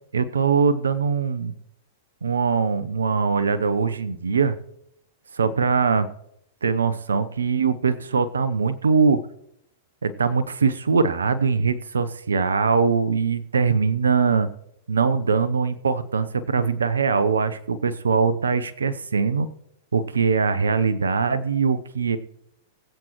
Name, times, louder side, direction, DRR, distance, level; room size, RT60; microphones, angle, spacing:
voice 1, 0.1-1.5 2.2-4.5 5.3-6.1 6.6-9.2 10.0-14.5 14.9-19.5 19.9-22.2, right 5 dB, 80° right, 13 dB, 0.8 m, -22 dB
21.0 x 7.8 x 3.1 m, 0.77 s
hypercardioid pair, 105°, 0 cm